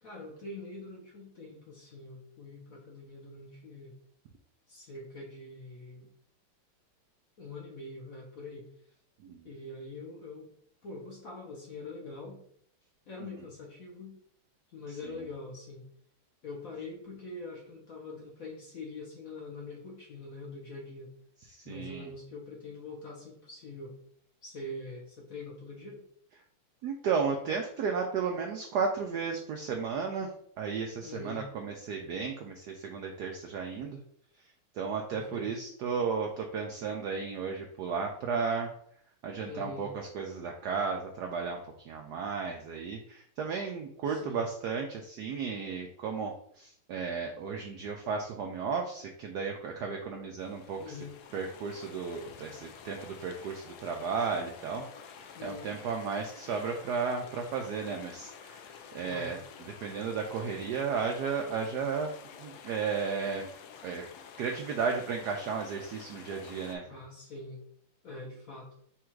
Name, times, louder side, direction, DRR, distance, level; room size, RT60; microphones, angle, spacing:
voice 1, 0.0-3.9 4.7-6.1 7.4-8.7 9.4-10.5 10.8-12.4 13.1-14.2 14.7-15.9 16.4-21.1 21.6-23.9 24.4-26.0 31.0-31.5 35.1-35.6 39.5-39.9 44.0-44.4 50.8-51.2 55.3-55.7 59.0-59.4 66.9-67.6 68.0-68.7, left 2 dB, 55° left, -2 dB, 1.0 m, -44 dB
voice 2, 21.5-22.1 26.8-30.3 30.6-34.0 34.7-38.7 39.2-51.0 51.3-62.1 62.4-63.5 63.8-64.0 64.4-66.8, right 5 dB, 85° right, 2 dB, 0.9 m, -34 dB
sound 1, 50.4-66.8, left 7 dB, 80° left, 0.9 m, -50 dB
4.3 x 2.4 x 4.5 m, 0.63 s
omnidirectional pair, 2.3 m